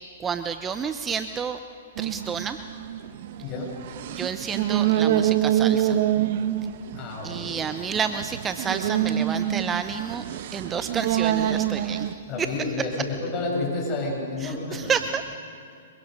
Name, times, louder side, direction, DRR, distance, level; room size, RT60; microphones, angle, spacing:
voice 1, 0.2-1.6 2.0-2.6 4.1-6.0 7.2-10.2 10.5-12.1 14.4-15.4, right 6 dB, 20° right, 9 dB, 0.8 m, -30 dB
sound 1, 2.0-12.2, right 11 dB, 55° right, 1.2 m, -26 dB
voice 2, 3.4-3.8 6.9-7.6 12.3-14.9, left 3 dB, 30° left, -2 dB, 7.7 m, -30 dB
26.5 x 23.0 x 5.4 m, 2.5 s
hypercardioid pair, 120°, 0 cm